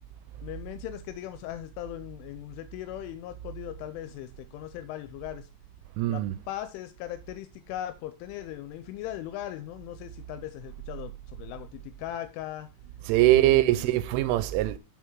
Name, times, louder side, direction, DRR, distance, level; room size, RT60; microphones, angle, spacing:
voice 1, 0.4-5.5 6.1-12.7 13.2-13.9, left 13 dB, 85° left, 3.0 m, -39 dB
voice 2, 6.0-6.4 13.1-14.8, right 17 dB, 85° right, 3.0 m, -22 dB
6.7 x 5.8 x 4.5 m
omnidirectional pair, 5.6 m